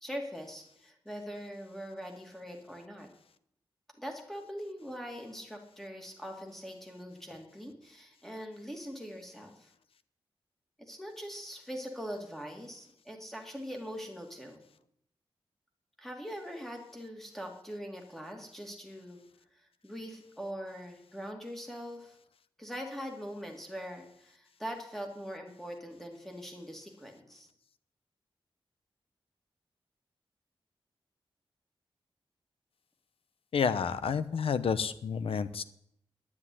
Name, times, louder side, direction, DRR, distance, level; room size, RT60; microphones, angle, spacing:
voice 1, 0.0-3.1 4.0-9.7 10.8-14.6 16.0-19.2 19.8-22.2 22.6-27.5, equal, 5° left, 2 dB, 2.4 m, -42 dB
voice 2, 33.5-35.6, left 6 dB, 85° left, 13 dB, 0.8 m, -30 dB
9.8 x 9.8 x 9.9 m, 0.73 s
wide cardioid pair, 170°, 9 cm